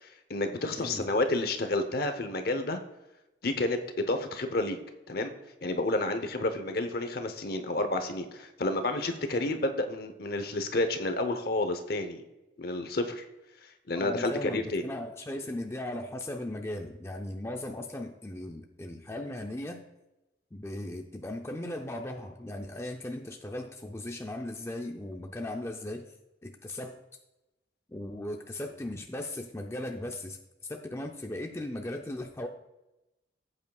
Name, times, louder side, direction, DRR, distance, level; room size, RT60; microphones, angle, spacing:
voice 1, 0.0-2.8 3.4-4.8 5.1-5.3 5.6-12.2 12.6-13.2 13.9-14.8, left 2 dB, 55° left, 8 dB, 0.9 m, -30 dB
voice 2, 0.8-1.1 14.0-19.8 20.5-26.1 26.4-27.0 27.9-30.4 30.6-32.5, left 1 dB, 15° left, 3 dB, 0.5 m, -37 dB
13.5 x 8.3 x 2.4 m, 0.96 s
head